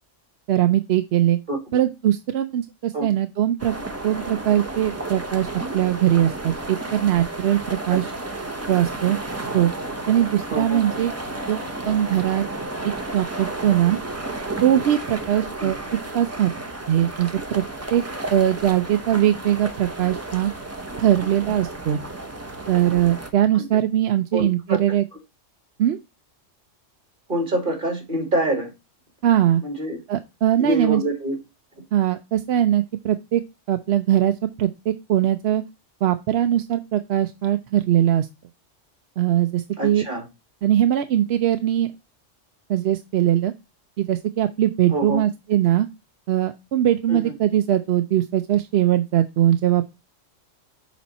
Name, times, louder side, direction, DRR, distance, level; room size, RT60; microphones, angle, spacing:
voice 1, 0.5-1.4 1.7-3.7 4.0-5.5 5.7-8.1 8.7-9.2 9.5-9.7 10.1-11.1 11.5-12.5 12.8-14.0 14.6-15.8 16.1-16.5 16.9-17.6 17.9-18.0 18.3-20.5 21.0-22.0 22.7-25.0 25.8-26.0 29.2-29.6 30.1-31.0 31.9-33.4 33.7-35.6 36.0-38.3 39.2-40.1 40.6-41.9 42.7-43.5 44.0-45.9 46.3-49.8, right 11 dB, 65° right, 0.8 m, -21 dB
sound 1, 3.6-23.3, right 2 dB, 15° right, 0.8 m, -32 dB
voice 2, 10.5-10.8 15.6-15.7 23.5-23.7 24.3-24.8 27.3-28.7 29.6-30.0 30.6-31.4 39.8-40.2 44.9-45.2 47.1-47.3, right 1 dB, 40° right, 2.5 m, -26 dB
7.2 x 4.2 x 4.1 m
omnidirectional pair, 1.3 m